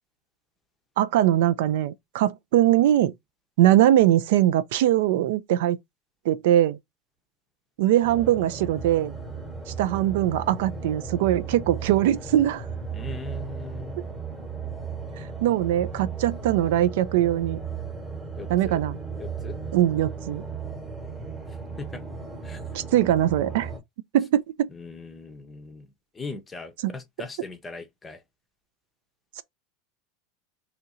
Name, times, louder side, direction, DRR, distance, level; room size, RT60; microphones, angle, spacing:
voice 1, 1.0-3.1 3.6-5.8 6.3-6.8 7.8-9.1 9.8-12.6 14.0-14.1 15.2-17.6 18.5-19.0 19.7-20.4 22.7-23.7 24.1-24.7 26.8-26.9 29.4-29.5, right 12 dB, 75° right, 0.4 m, -21 dB
sound 1, 8.0-23.8, right 5 dB, 10° right, 1.0 m, -36 dB
voice 2, 12.9-14.0 18.4-18.8 19.2-19.6 21.5-22.0 22.4-22.8 24.7-28.2, left 4 dB, 15° left, 0.6 m, -40 dB
2.8 x 2.5 x 4.1 m
supercardioid pair, 155°, 0 cm